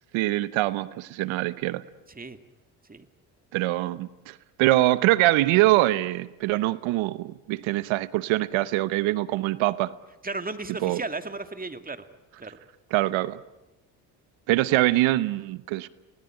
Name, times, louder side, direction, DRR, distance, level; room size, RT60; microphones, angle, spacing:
voice 1, 0.1-1.8 3.5-9.9 10.8-11.0 12.9-13.4 14.5-15.9, right 17 dB, 70° right, 17 dB, 1.0 m, -24 dB
voice 2, 10.2-12.0 12.4-12.6, right 3 dB, 15° right, 9 dB, 2.2 m, -34 dB
28.5 x 19.0 x 9.1 m, 1.0 s
hypercardioid pair, 60°, 49 cm